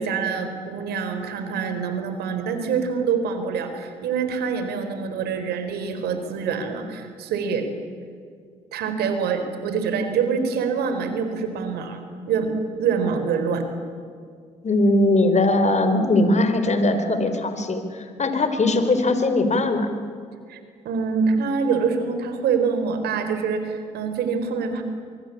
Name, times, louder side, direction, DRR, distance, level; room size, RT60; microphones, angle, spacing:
voice 1, 0.0-7.7 8.7-12.0 12.3-12.5 12.8-13.6 20.5-20.6 20.8-24.8, right 6 dB, 75° right, 8 dB, 4.1 m, -25 dB
voice 2, 14.6-19.9, left 2 dB, 45° left, 8 dB, 4.5 m, -20 dB
25.0 x 23.5 x 8.7 m, 2.2 s
hypercardioid pair, 50°, 17 cm